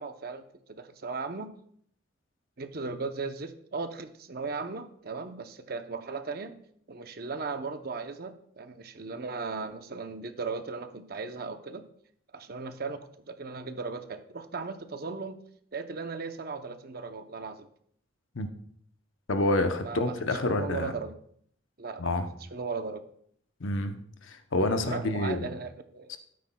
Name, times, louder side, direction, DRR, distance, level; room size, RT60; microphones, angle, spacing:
voice 1, 0.0-1.5 2.6-6.6 6.9-11.8 12.3-13.0 13.3-15.4 15.7-17.7 19.8-20.1 20.4-21.2 21.8-22.1 22.5-23.0 24.9-26.2, right 4 dB, 45° right, 8 dB, 0.7 m, -37 dB
voice 2, 19.3-20.9 22.0-22.3 23.6-23.9 24.3-25.5 26.1-26.2, left 2 dB, 70° left, 7 dB, 0.8 m, -28 dB
12.5 x 9.4 x 2.2 m, 0.63 s
head